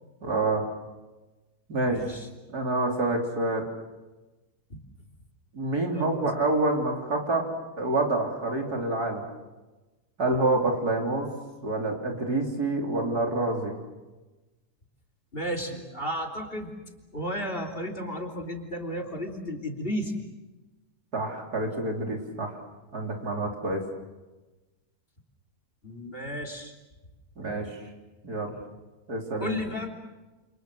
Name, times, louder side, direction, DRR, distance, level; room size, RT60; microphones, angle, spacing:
voice 1, 0.2-0.7 1.7-2.0 2.5-3.7 5.5-7.5 7.8-9.3 10.2-11.3 11.6-13.7 21.1-22.6 22.9-23.8 27.4-27.8 28.2-28.5 29.1-29.6, right 2 dB, 75° right, 1 dB, 4.3 m, -27 dB
voice 2, 1.9-2.3 4.7-4.8 5.9-6.2 15.3-16.7 17.1-20.2 25.8-26.8 29.4-29.9, equal, 35° left, 5 dB, 3.5 m, -33 dB
29.0 x 28.0 x 6.5 m, 1.2 s
omnidirectional pair, 1.7 m